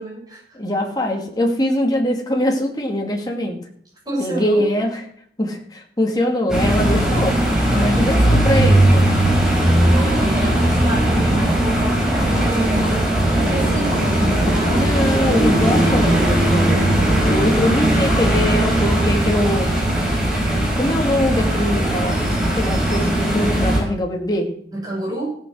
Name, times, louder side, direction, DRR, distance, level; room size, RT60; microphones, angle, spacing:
voice 1, 0.0-0.6 4.0-4.6 7.7-7.9 9.6-14.9 17.2-17.7 24.7-25.3, right 1 dB, 20° right, -3 dB, 6.2 m, -29 dB
voice 2, 0.5-3.6 4.2-5.0 5.4-7.4 7.7-9.0 14.7-16.8 17.2-19.7 20.7-24.5, left 1 dB, 20° left, 1 dB, 2.4 m, -22 dB
sound 1, 6.5-23.8, right 1 dB, 5° right, 5.4 m, -18 dB
16.0 x 7.5 x 6.2 m, 0.63 s
head